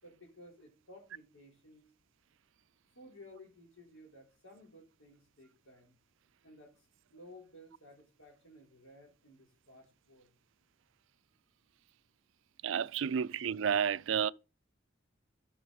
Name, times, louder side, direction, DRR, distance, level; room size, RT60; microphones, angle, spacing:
voice 1, 0.0-1.9 2.9-6.0 6.4-6.9 7.1-10.4, left 1 dB, 80° left, 3.8 m, -56 dB
voice 2, 12.6-14.3, right 7 dB, 65° right, 0.4 m, -31 dB
12.5 x 6.1 x 4.0 m
head